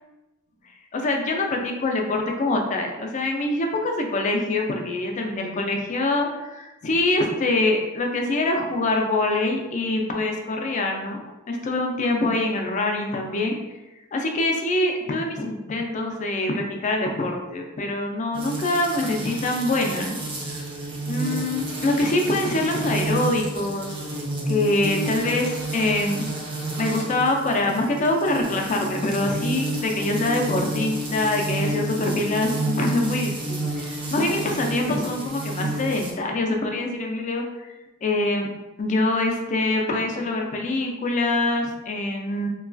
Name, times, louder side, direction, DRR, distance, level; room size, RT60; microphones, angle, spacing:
voice 1, 0.9-13.6 14.1-20.6 21.1-24.0 24.5-26.4 26.8-37.7 38.0-38.5 38.8-42.5, left 2 dB, 35° left, 2 dB, 0.4 m, -24 dB
sound 1, 18.3-36.1, right 2 dB, 25° right, 0.5 m, -30 dB
3.0 x 2.2 x 2.4 m, 1.1 s
head